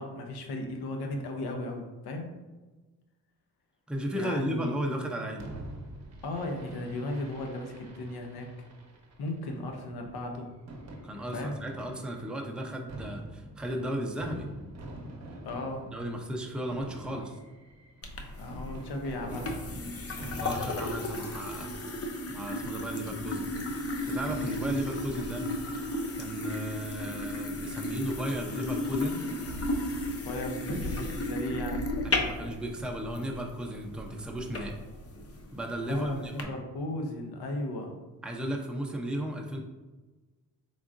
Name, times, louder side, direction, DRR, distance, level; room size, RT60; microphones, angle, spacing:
voice 1, 0.0-2.3 4.1-4.7 6.2-8.5 9.2-10.5 11.3-11.6 15.4-15.9 17.1-17.2 18.4-19.6 24.3-24.6 30.3-31.9 35.9-37.9, left 1 dB, 75° left, 3 dB, 0.8 m, -36 dB
voice 2, 3.9-5.5 11.0-14.5 15.9-17.4 20.4-21.7 22.3-23.5 24.1-25.4 26.2-29.2 32.0-34.8 35.5-36.5 38.2-39.6, right 1 dB, ahead, 1 dB, 0.6 m, -35 dB
Fireworks, 5.4-21.5, right 1 dB, 45° right, 0.8 m, -46 dB
sound 1, 18.0-36.4, left 1 dB, 40° left, 0.6 m, -34 dB
3.8 x 3.5 x 2.5 m, 1.2 s
cardioid pair, 70°, 38 cm